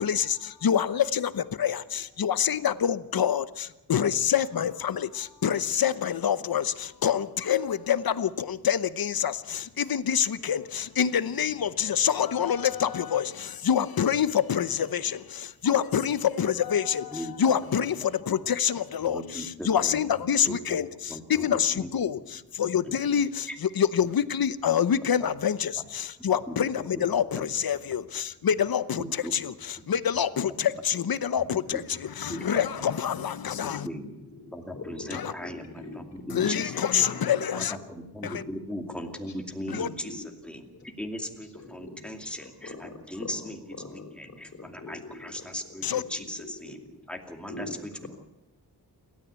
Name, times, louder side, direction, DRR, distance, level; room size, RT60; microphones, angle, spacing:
voice 1, 0.0-33.9 35.1-35.3 36.3-37.8 38.2-38.4 39.7-39.9 45.8-46.0, left 8 dB, 65° left, 0.9 m, -26 dB
voice 2, 17.1-17.5 19.0-20.0 20.4-21.9 22.8-23.1 23.5-23.6 26.5-27.0 27.3-27.4 29.0-29.4 30.6-30.7 31.7-31.8 32.3-32.6 33.6-34.1 34.5-36.7 37.0-37.1 37.6-43.6 44.2-46.8 47.1-47.7 48.0-48.1, equal, 5° left, 2.5 m, -38 dB
voice 3, 33.9-37.4 38.0-39.2 39.8-40.2 40.5-40.9 41.4-42.1 42.4-45.6 45.8-46.0 46.4-46.8 47.5-48.1, left 3 dB, 40° left, 4.1 m, -44 dB
28.5 x 13.5 x 8.3 m
wide cardioid pair, 165°, 39 cm